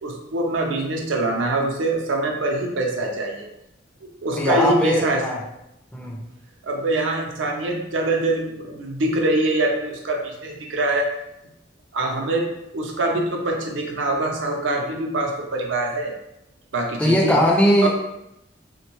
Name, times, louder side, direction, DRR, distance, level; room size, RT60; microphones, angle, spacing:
voice 1, 0.0-3.5 4.0-5.2 6.6-11.1 11.9-16.1 16.7-17.4 17.8-17.9, right 2 dB, 85° right, 1 dB, 0.5 m, -24 dB
voice 2, 4.4-5.4 5.9-6.2 17.0-17.9, equal, 5° left, -2 dB, 0.4 m, -19 dB
3.3 x 2.2 x 2.9 m, 0.87 s
head